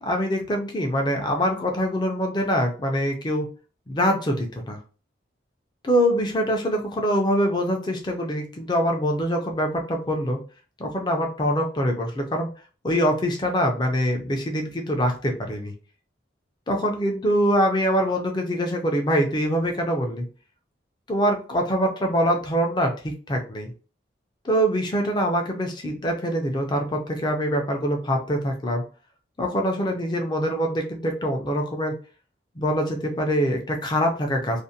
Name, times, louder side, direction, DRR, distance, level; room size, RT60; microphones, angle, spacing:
voice 1, 0.0-3.5 3.9-4.8 5.8-10.4 10.8-12.5 12.8-15.7 16.7-20.3 21.1-23.7 24.4-28.8 29.4-31.9 32.6-34.6, equal, 25° left, 2 dB, 0.4 m, -24 dB
2.5 x 2.1 x 2.6 m, 0.37 s
head